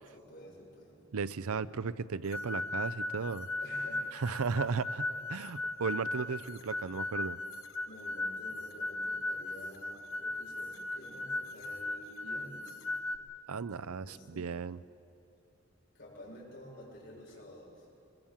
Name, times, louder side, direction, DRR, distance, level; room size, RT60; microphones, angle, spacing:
voice 1, 0.1-1.0 3.6-4.6 7.8-12.9 13.8-14.5 15.9-17.9, equal, 50° left, -4 dB, 6.6 m, -51 dB
voice 2, 1.1-3.5 4.1-7.4 13.5-14.8, right 5 dB, 85° right, 15 dB, 0.6 m, -35 dB
sound 1, 2.3-13.2, left 2 dB, 75° left, 0.9 m, -37 dB
21.5 x 21.5 x 7.3 m, 2.8 s
head